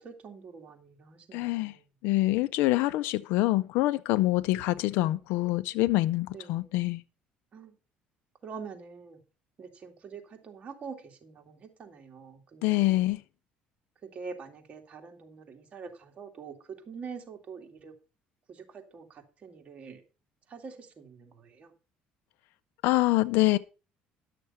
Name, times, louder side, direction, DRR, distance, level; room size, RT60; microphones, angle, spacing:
voice 1, 0.0-1.9 4.5-5.1 6.3-6.8 7.5-7.8 8.4-9.2 9.6-13.0 14.0-17.9 18.5-20.0 20.5-21.7, right 5 dB, 35° right, 2.4 m, -45 dB
voice 2, 1.3-1.8 2.0-7.0 12.6-13.2 22.8-23.6, left 18 dB, 80° left, 0.4 m, -25 dB
11.0 x 6.6 x 5.6 m
cardioid pair, 115°, 3 cm